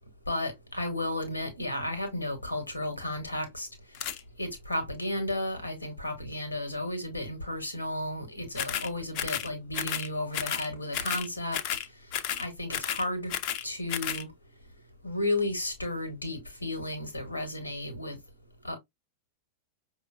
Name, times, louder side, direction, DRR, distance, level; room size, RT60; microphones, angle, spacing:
voice 1, 0.3-3.7 4.4-11.6 12.4-13.3 13.6-14.3 15.0-18.2 18.6-18.8, left 1 dB, 85° left, 1.5 m, -33 dB
sound 1, 3.9-4.2 8.6-8.9 9.2-9.5 9.7-10.1 10.3-10.7 10.9-11.3 11.5-11.9 12.1-12.5 12.7-13.6 13.9-14.2, left 11 dB, 45° left, 0.5 m, -32 dB
5.7 x 2.8 x 2.5 m
figure-of-eight pair, 90°, 0 cm